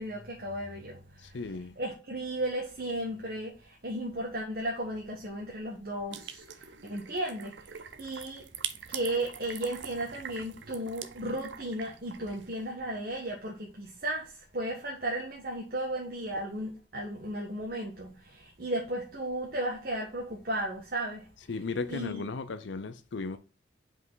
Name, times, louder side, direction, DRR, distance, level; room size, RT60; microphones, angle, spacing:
voice 1, 0.0-1.4 1.8-7.6 8.0-8.4 8.9-21.3 21.9-22.2, right 1 dB, 55° right, 1.4 m, -35 dB
voice 2, 1.2-1.7 21.5-23.4, left 3 dB, 85° left, 0.6 m, -35 dB
sound 1, 6.1-12.7, right 9 dB, 80° right, 0.7 m, -44 dB
5.4 x 5.3 x 3.9 m
head